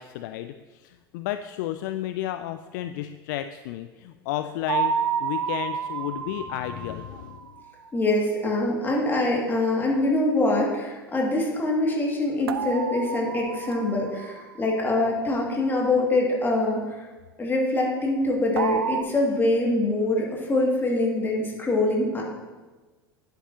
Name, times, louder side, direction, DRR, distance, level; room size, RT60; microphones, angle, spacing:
voice 1, 0.0-7.5, left 13 dB, 50° left, 10 dB, 0.4 m, -33 dB
sound 1, 4.7-7.6 12.5-14.7 18.6-19.0, right 7 dB, 75° right, 0.5 m, -30 dB
voice 2, 7.9-17.1 17.4-22.2, left 2 dB, 15° left, -2 dB, 2.3 m, -24 dB
10.0 x 8.8 x 2.9 m, 1.3 s
figure-of-eight pair, 80°, 13 cm